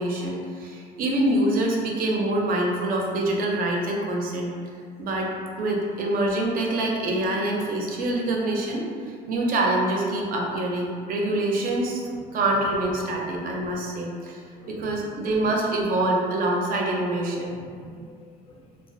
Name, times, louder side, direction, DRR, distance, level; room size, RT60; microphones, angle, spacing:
voice 1, 0.0-4.5 5.0-5.3 5.6-12.0 12.3-14.4 14.7-17.6, right 1 dB, 60° right, -1 dB, 0.5 m, -25 dB
voice 2, 11.8-12.2 13.6-13.7 14.5-15.0 15.4-15.5 17.5-18.6, left 1 dB, 30° left, -1 dB, 0.4 m, -47 dB
2.3 x 2.1 x 2.5 m, 2.1 s
cardioid pair, 110°, 17 cm